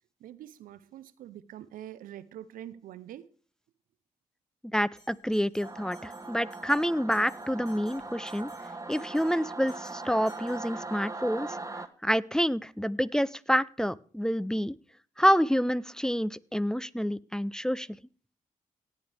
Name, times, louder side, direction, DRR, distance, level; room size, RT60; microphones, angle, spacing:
voice 1, 0.2-3.3, right 11 dB, 90° right, 0.5 m, -45 dB
voice 2, 4.6-8.5 8.9-11.6 12.0-14.7 15.2-18.0, equal, 5° left, 0.5 m, -28 dB
Bell, 5.0-11.2, left 1 dB, 65° left, 6.4 m, -61 dB
Singing / Musical instrument, 5.6-11.9, right 3 dB, 25° right, 1.1 m, -40 dB
18.0 x 8.0 x 3.4 m
supercardioid pair, 40°, 14 cm